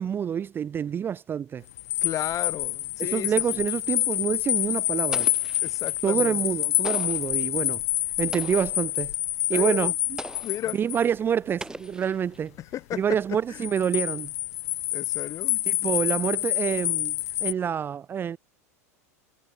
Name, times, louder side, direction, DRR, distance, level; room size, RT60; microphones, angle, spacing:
voice 1, 0.0-1.6 3.0-5.3 6.0-7.8 8.2-9.1 9.5-10.2 10.7-12.5 12.9-14.3 15.7-17.1 17.4-18.4, right 8 dB, 25° right, 0.5 m, -27 dB
sound 1, 1.7-11.1 13.5-17.5, left 17 dB, 70° left, 0.4 m, -27 dB
voice 2, 2.0-3.6 5.6-6.4 9.5-9.9 10.4-10.8 12.7-13.6 14.9-15.6, left 12 dB, 40° left, 3.0 m, -34 dB
Explosion, 5.1-6.0 6.8-7.4 8.3-8.9 10.2-10.7 11.6-12.5, right 2 dB, 10° right, 5.1 m, -40 dB
hypercardioid pair, 90°, 8 cm